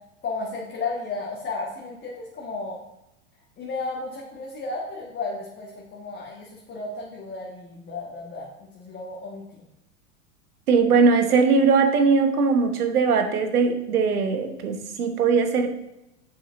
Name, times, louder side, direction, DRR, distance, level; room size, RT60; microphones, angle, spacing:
voice 1, 0.2-2.8 3.6-9.6, left 3 dB, 25° left, -3 dB, 1.4 m, -33 dB
voice 2, 10.7-15.7, right 5 dB, 85° right, 6 dB, 1.1 m, -20 dB
7.6 x 6.5 x 2.6 m, 0.90 s
hypercardioid pair, 100°, 44 cm